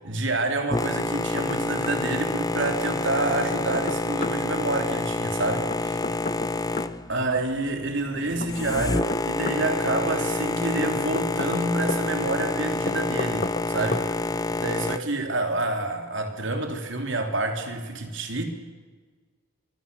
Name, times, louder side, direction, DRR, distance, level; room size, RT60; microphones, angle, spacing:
voice 1, 0.0-6.0 7.1-14.2 14.6-18.4, right 2 dB, 60° right, 3.5 m, -28 dB
Boat Water vehicle, 0.7-15.0, left 2 dB, 15° left, 0.7 m, -28 dB
Knock, 0.8-1.6 1.8-1.9 3.2-4.4 5.7-6.9 8.4-9.6 10.8-12.0 12.9-13.7 13.9-14.1, left 3 dB, 40° left, 1.0 m, -33 dB
25.5 x 23.5 x 7.0 m
head